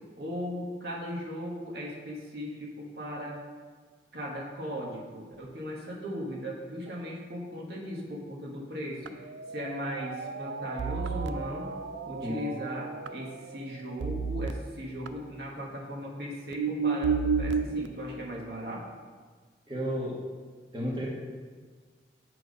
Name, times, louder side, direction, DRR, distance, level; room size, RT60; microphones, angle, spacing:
voice 1, 0.2-3.4 4.1-11.7 12.1-18.9, equal, 60° right, -3 dB, 1.4 m, -38 dB
sound 1, 9.1-13.6 14.0-14.5 15.1-15.2 16.5-17.9, right 5 dB, 90° right, 0.4 m, -32 dB
voice 2, 19.7-20.2 20.7-21.1, equal, 25° right, -4 dB, 1.3 m, -32 dB
8.2 x 4.6 x 5.2 m, 1.5 s
head